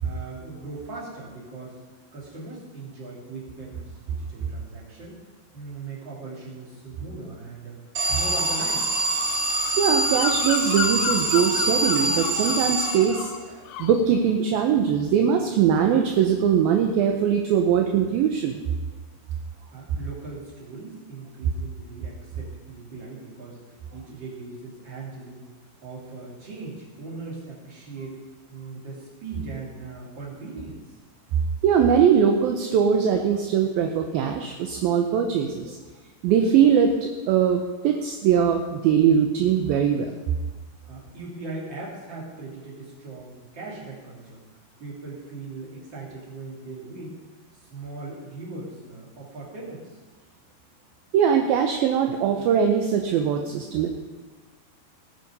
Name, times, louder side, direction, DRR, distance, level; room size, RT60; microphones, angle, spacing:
voice 1, 0.0-1.8 2.1-5.2 5.5-7.8 8.1-8.9 19.7-25.5 25.8-28.2 28.5-30.8 40.9-44.4 44.8-47.2 47.5-50.0, right 3 dB, 30° right, -4 dB, 3.4 m, -39 dB
Alarm, 7.9-13.5, right 2 dB, 55° right, 1.3 m, -25 dB
voice 2, 9.8-13.3 13.8-18.6 31.6-35.8 36.2-40.2 51.1-53.9, right 8 dB, 75° right, 3 dB, 2.3 m, -21 dB
Bird vocalization bird call bird song, 9.9-13.4 13.7-14.1, left 9 dB, 85° left, 2.4 m, -33 dB
19.0 x 7.5 x 5.4 m, 1.2 s
omnidirectional pair, 4.9 m